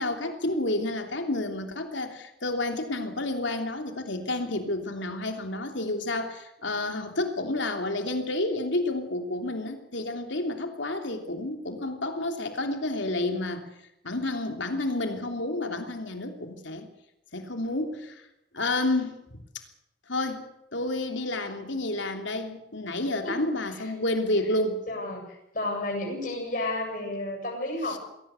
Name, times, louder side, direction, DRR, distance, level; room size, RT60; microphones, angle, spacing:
voice 1, 0.0-13.6 14.0-16.9 17.3-18.2 18.5-19.2 20.1-20.4 20.7-24.8 27.9-28.0, left 2 dB, 75° left, 5 dB, 3.1 m, -30 dB
voice 2, 23.2-23.9 24.9-28.0, left 2 dB, 45° left, 0 dB, 7.8 m, -32 dB
22.0 x 17.0 x 8.3 m, 0.85 s
head